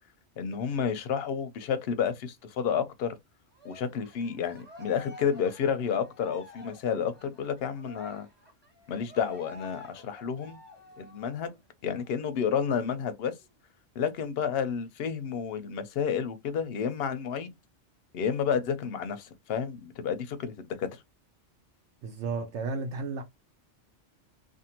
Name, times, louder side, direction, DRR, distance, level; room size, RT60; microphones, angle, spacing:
voice 1, 0.4-3.1 3.6-8.3 8.9-10.6 11.0-11.5 11.8-13.4 14.0-17.5 18.1-21.0, left 7 dB, 65° left, 0.7 m, -30 dB
Cheering, 3.6-11.5 11.9-12.1 12.5-13.5, left 2 dB, 10° right, 1.1 m, -49 dB
voice 2, 22.0-23.2, right 4 dB, 70° right, 0.9 m, -33 dB
2.6 x 2.5 x 2.8 m
omnidirectional pair, 1.2 m